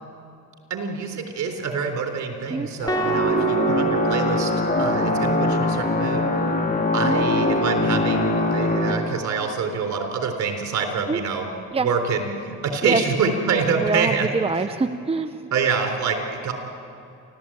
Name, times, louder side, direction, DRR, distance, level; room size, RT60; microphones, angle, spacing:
voice 1, 0.7-4.5 4.8-6.3 6.9-11.5 11.8-14.3 15.5-16.5, right 5 dB, 70° right, 4 dB, 3.8 m, -26 dB
sound 1, 2.8-8.9, left 2 dB, 30° left, 3.8 m, -22 dB
sound 2, 2.9-5.2, right 7 dB, 15° left, 2.7 m, -26 dB
voice 2, 13.8-15.4, right 3 dB, 20° right, 9 dB, 0.8 m, -24 dB
29.5 x 13.5 x 8.9 m, 2.6 s
cardioid pair, 90°, 30 cm